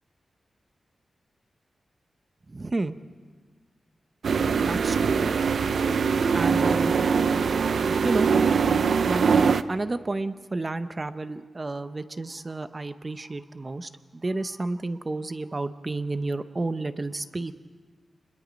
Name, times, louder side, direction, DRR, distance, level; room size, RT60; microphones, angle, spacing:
voice 1, 2.5-3.0 4.7-5.2 6.3-6.9 8.0-8.3 9.0-9.4 9.7-17.5, right 2 dB, 25° right, 11 dB, 0.7 m, -31 dB
sound 1, 4.2-9.6, right 6 dB, 70° right, 0.5 m, -22 dB
25.5 x 21.0 x 5.2 m, 1.5 s
wide cardioid pair, 135°, 0 cm